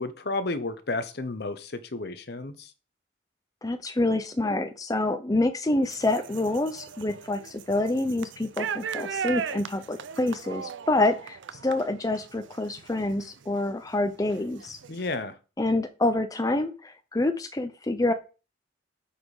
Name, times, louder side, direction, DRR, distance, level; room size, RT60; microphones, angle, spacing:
voice 1, 0.0-2.7 14.9-15.4, left 2 dB, 55° left, 0.8 m, -32 dB
voice 2, 3.6-14.8 15.6-18.1, left 2 dB, 20° left, 0.5 m, -27 dB
sound 1, 5.8-13.6 14.0-15.1, right 7 dB, 75° right, 0.5 m, -38 dB
7.7 x 4.3 x 4.8 m
head